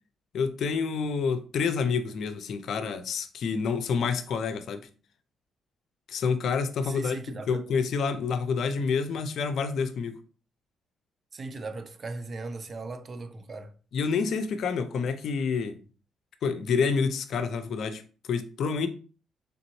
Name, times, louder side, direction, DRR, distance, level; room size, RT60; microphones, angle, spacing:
voice 1, 0.3-4.9 6.1-7.2 7.5-10.2 13.9-15.8 16.4-18.0 18.3-18.9, left 5 dB, 65° left, 0.5 m, -28 dB
voice 2, 6.8-7.6 11.3-13.7, right 3 dB, 40° right, 0.5 m, -38 dB
3.9 x 3.5 x 3.0 m
cardioid pair, 90°, 0 cm